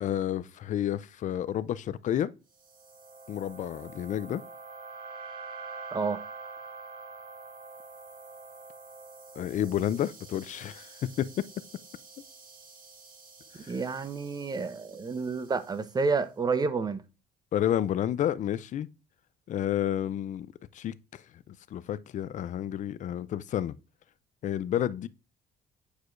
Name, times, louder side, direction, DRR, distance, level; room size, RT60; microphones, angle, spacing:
voice 1, 0.0-2.3 3.3-4.4 9.4-11.5 13.6-13.8 17.5-18.9 19.5-20.5 20.7-23.7 24.4-25.1, left 11 dB, 45° left, 0.4 m, -30 dB
sound 1, 2.6-15.9, right 4 dB, 55° right, 2.4 m, -47 dB
voice 2, 13.7-17.0, right 4 dB, 25° right, 0.7 m, -29 dB
8.2 x 4.8 x 2.5 m
cardioid pair, 110°, 17 cm